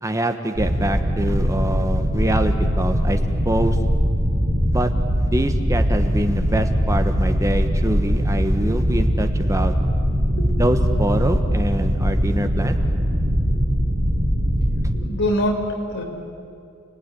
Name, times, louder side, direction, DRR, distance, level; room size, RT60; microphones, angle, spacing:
voice 1, 0.0-3.2 3.4-3.8 4.7-4.9 5.2-9.7 10.6-12.8, right 1 dB, 15° right, 7 dB, 1.1 m, -25 dB
sound 1, 0.5-15.0, equal, 50° right, 4.8 m, -21 dB
voice 2, 14.9-16.0, left 1 dB, 60° left, 2 dB, 4.6 m, -24 dB
30.0 x 19.5 x 10.0 m, 2.5 s
head